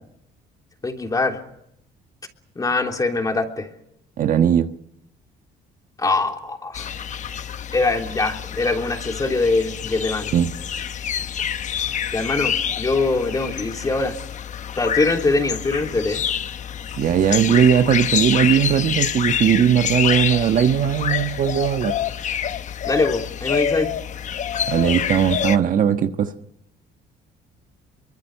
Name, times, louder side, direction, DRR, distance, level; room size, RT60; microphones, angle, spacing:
voice 1, 0.8-1.4 2.5-3.7 6.0-6.9 7.7-10.3 12.1-14.1 14.8-16.2 22.8-23.9, left 3 dB, 20° left, 3 dB, 3.3 m, -22 dB
voice 2, 4.2-4.7 10.3-10.5 17.0-21.9 24.7-26.3, right 9 dB, 50° right, 7 dB, 1.4 m, -18 dB
sound 1, 6.7-25.6, left 9 dB, 45° left, 1.0 m, -27 dB
25.0 x 24.0 x 6.6 m, 0.78 s
cardioid pair, 110°, 17 cm